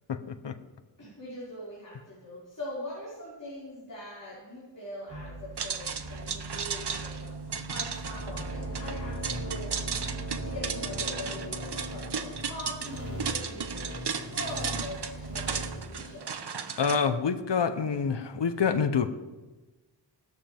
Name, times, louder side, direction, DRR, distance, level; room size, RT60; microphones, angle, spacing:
voice 1, 0.1-0.6 16.8-19.1, left 6 dB, 70° left, 10 dB, 1.0 m, -27 dB
voice 2, 1.0-9.8 10.4-16.3, left 1 dB, 45° left, -9 dB, 5.6 m, -42 dB
sound 1, 5.1-16.2, right 1 dB, 40° right, 4.8 m, -38 dB
sound 2, 5.6-17.0, right 6 dB, 60° right, 1.0 m, -35 dB
17.5 x 13.0 x 3.6 m, 1.2 s
wide cardioid pair, 105°, 45 cm